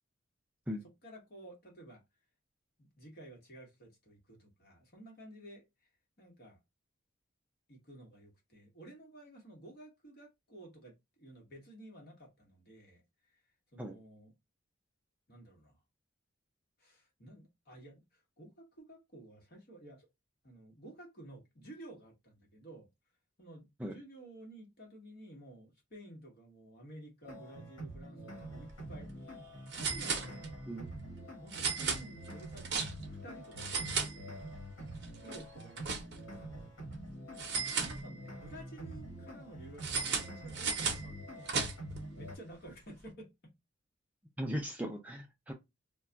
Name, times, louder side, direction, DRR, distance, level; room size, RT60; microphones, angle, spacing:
voice 1, 0.8-2.0 2.8-5.9 6.2-6.6 7.7-13.0 13.3-13.4 13.7-14.3 15.3-15.7 16.8-20.1 20.4-22.9 23.4-29.1 29.7-30.5 31.4-34.4 35.2-36.7 37.7-41.6 42.1-43.5 44.4-44.6, right 1 dB, 45° left, 1.1 m, -53 dB
sound 1, 27.2-42.4, right 1 dB, 70° left, 1.2 m, -46 dB
sound 2, 28.5-28.7 29.0-29.1 29.7-30.7 31.5-33.2 33.5-34.7 35.0-36.4 37.4-38.5 39.8-42.0, right 5 dB, 55° right, 0.7 m, -36 dB
voice 2, 44.4-45.5, equal, 5° right, 0.3 m, -38 dB
2.3 x 2.2 x 3.8 m
head